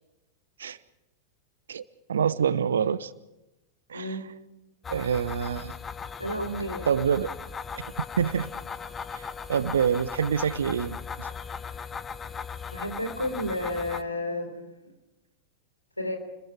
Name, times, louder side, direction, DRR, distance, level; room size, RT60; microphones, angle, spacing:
voice 1, 2.1-3.1 3.9-4.2 4.9-5.7 6.9-7.3 8.2-8.5 9.2-11.3, right 7 dB, 65° right, 17 dB, 1.0 m, -26 dB
sound 1, 4.8-14.0, left 6 dB, 20° left, 0.9 m, -38 dB
voice 2, 6.2-6.9 12.7-14.8 16.0-16.2, left 1 dB, 85° left, 6 dB, 3.8 m, -31 dB
30.0 x 21.5 x 4.7 m, 0.98 s
figure-of-eight pair, 90°, 0 cm